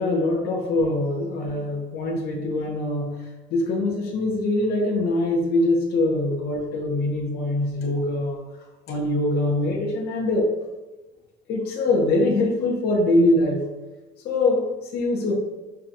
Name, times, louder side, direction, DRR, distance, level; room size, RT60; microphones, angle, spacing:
voice 1, 0.0-3.2 3.5-8.4 8.9-10.5 11.5-13.7 14.2-15.3, left 2 dB, 55° left, -1 dB, 0.7 m, -23 dB
5.4 x 2.3 x 2.6 m, 1.1 s
cardioid pair, 160°, 20 cm